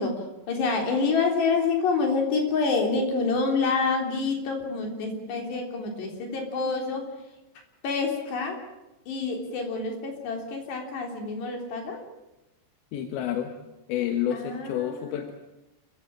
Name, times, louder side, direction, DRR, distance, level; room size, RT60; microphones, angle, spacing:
voice 1, 0.0-7.0 7.8-8.6 9.1-12.0 14.3-15.3, left 4 dB, 70° left, 3 dB, 5.6 m, -27 dB
voice 2, 12.9-13.5 13.9-15.3, left 10 dB, 90° left, 6 dB, 3.7 m, -29 dB
28.5 x 15.5 x 8.8 m, 0.96 s
omnidirectional pair, 5.1 m